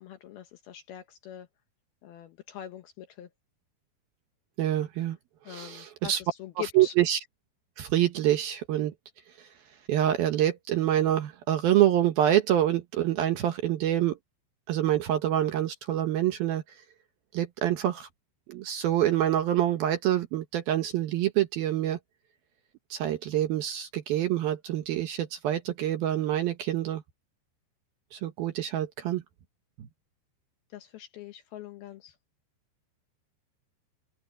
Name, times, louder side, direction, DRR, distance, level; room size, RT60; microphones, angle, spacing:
voice 1, 0.0-1.5 2.0-3.3 5.4-6.9 30.7-32.2, left 12 dB, 70° left, 2.5 m, -43 dB
voice 2, 4.6-5.2 5.5-6.2 6.6-7.2 7.8-8.9 9.4-9.5 9.9-14.2 14.7-16.6 17.3-18.1 18.5-22.0 22.9-27.0 28.1-29.2 29.8-29.9, right 12 dB, 70° right, 2.5 m, -26 dB
open air
omnidirectional pair, 5.4 m